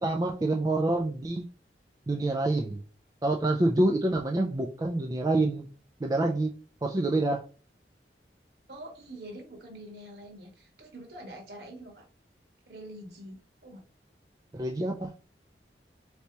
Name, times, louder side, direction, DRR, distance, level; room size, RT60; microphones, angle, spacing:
voice 1, 0.0-1.5 2.1-2.8 3.2-5.7 6.0-6.5 6.8-7.4 14.5-15.1, right 2 dB, 20° right, 0.3 m, -27 dB
voice 2, 8.7-12.0 12.7-13.8, right 1 dB, 65° right, 1.5 m, -45 dB
4.1 x 3.3 x 2.9 m
head